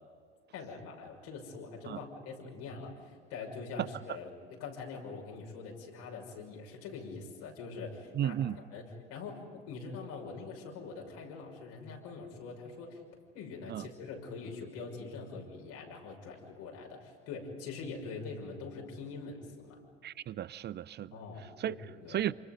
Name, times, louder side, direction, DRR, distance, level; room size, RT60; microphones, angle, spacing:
voice 1, 0.5-13.0 13.3-19.8 21.1-22.2, left 4 dB, 60° left, 6.2 m, -44 dB
voice 2, 8.1-8.6 13.7-13.9 20.0-21.1 21.6-21.7 22.1-22.3, right 11 dB, 30° right, 0.6 m, -34 dB
28.5 x 26.5 x 5.3 m
figure-of-eight pair, 65°, 35 cm